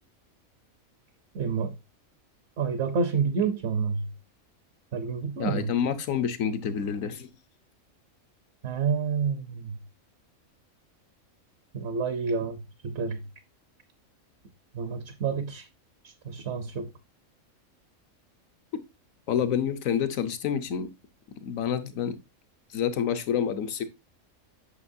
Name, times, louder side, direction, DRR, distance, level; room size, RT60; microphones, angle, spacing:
voice 1, 1.3-1.7 2.6-4.1 4.9-5.7 8.6-9.7 11.7-13.2 14.7-15.7 16.0-16.9, right 5 dB, 60° right, 1.0 m, -29 dB
voice 2, 5.4-7.3 19.3-20.9 21.4-22.1 22.7-23.8, left 8 dB, 75° left, 1.2 m, -28 dB
8.3 x 6.0 x 2.6 m
omnidirectional pair, 1.4 m